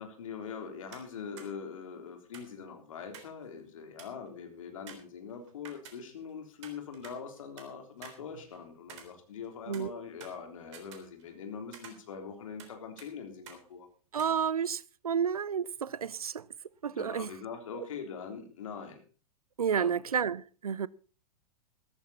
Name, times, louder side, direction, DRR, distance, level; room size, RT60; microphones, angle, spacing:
voice 1, 0.0-13.9 17.0-19.0 19.7-20.0, left 6 dB, 60° left, 3.6 m, -43 dB
sound 1, 0.9-1.1 1.4-1.5 2.3-3.4 3.7-3.8 4.0-4.3 4.9-6.3 6.6-7.7 8.0-9.5 9.7-11.4 11.7-12.7 13.0-13.1 13.5-13.6 14.2-14.3, right 7 dB, 50° right, 3.6 m, -51 dB
voice 2, 14.1-16.4 16.8-17.3 19.6-20.9, right 7 dB, 75° right, 0.6 m, -31 dB
14.0 x 14.0 x 4.2 m
figure-of-eight pair, 100°, 19 cm